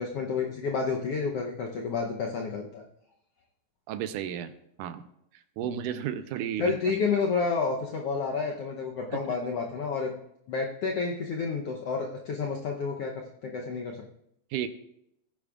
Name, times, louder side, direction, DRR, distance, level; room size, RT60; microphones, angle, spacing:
voice 1, 0.0-2.8 5.6-5.8 6.6-10.2 10.5-13.1 13.4-14.0, left 4 dB, 75° left, 1 dB, 1.4 m, -30 dB
voice 2, 3.9-4.5 4.8-5.1 5.6-6.7 9.1-9.2 14.5-14.7, right 10 dB, 80° right, 11 dB, 2.1 m, -32 dB
19.5 x 10.0 x 2.4 m, 0.77 s
omnidirectional pair, 3.8 m